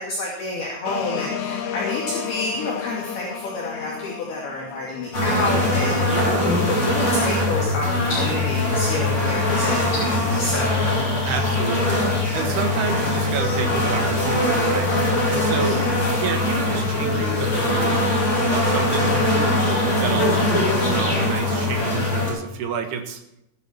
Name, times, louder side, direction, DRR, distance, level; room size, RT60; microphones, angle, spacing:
voice 1, 0.0-10.9 15.6-16.1, left 2 dB, 55° left, -3 dB, 4.0 m, -29 dB
sound 1, 0.8-6.3, left 9 dB, 75° left, 2.3 m, -32 dB
sound 2, 5.1-22.3, left 1 dB, 25° left, 5.7 m, -21 dB
voice 2, 6.0-6.6 11.2-15.8 16.2-18.0 18.5-19.5 20.0-23.2, right 6 dB, 65° right, 5 dB, 3.1 m, -30 dB
20.0 x 10.5 x 4.5 m, 0.84 s
omnidirectional pair, 5.7 m